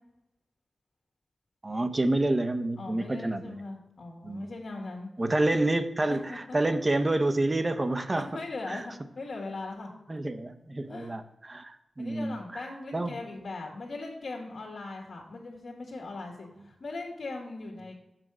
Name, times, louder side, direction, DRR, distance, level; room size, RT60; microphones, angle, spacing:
voice 1, 1.6-3.6 4.2-4.5 5.2-8.3 8.7-8.8 10.1-12.6 12.9-13.2, right 2 dB, 30° right, 10 dB, 0.8 m, -28 dB
voice 2, 2.8-5.1 5.4-5.6 6.1-6.8 8.2-9.9 10.9-11.2 12.0-17.9, left 3 dB, 75° left, 0 dB, 1.8 m, -40 dB
7.6 x 4.6 x 6.2 m, 0.91 s
cardioid pair, 60°, 0 cm